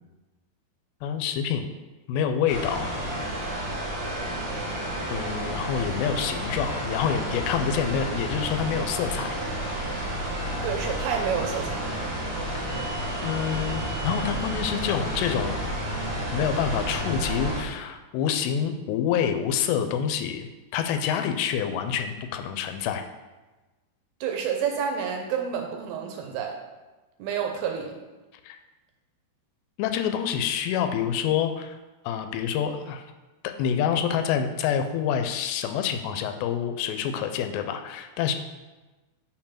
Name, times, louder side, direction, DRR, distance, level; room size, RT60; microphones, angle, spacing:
voice 1, 1.0-1.7 2.1-2.9 5.1-9.4 13.2-15.6 16.3-23.0 28.4-28.6 29.8-31.8 32.0-33.0 33.4-38.3, left 8 dB, 85° left, 7 dB, 2.8 m, -27 dB
sound 1, 2.5-17.6, right 1 dB, 60° right, 2.6 m, -31 dB
voice 2, 10.6-11.8 24.2-26.6 27.2-28.0, right 7 dB, 75° right, 2 dB, 2.5 m, -29 dB
6.0 x 4.4 x 5.7 m, 1.2 s
omnidirectional pair, 4.8 m